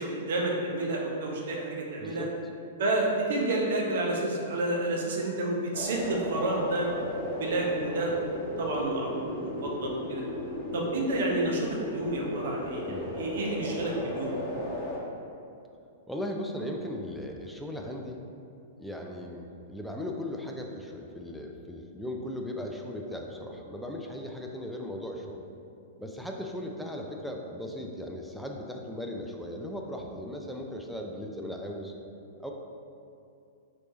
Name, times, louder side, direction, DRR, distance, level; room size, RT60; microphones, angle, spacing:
voice 1, 0.0-2.3 2.8-6.9 7.4-8.1 8.6-10.2 10.7-14.4, right 2 dB, 60° right, -2 dB, 0.7 m, -30 dB
voice 2, 2.0-2.3 12.9-13.2 16.1-18.2 18.8-25.4 26.0-31.9 32.4-32.5, left 1 dB, ahead, 0 dB, 0.4 m, -37 dB
sound 1, 5.7-15.0, left 1 dB, 20° left, 1.0 m, -35 dB
3.2 x 3.1 x 4.0 m, 2.6 s
figure-of-eight pair, 105°, 0 cm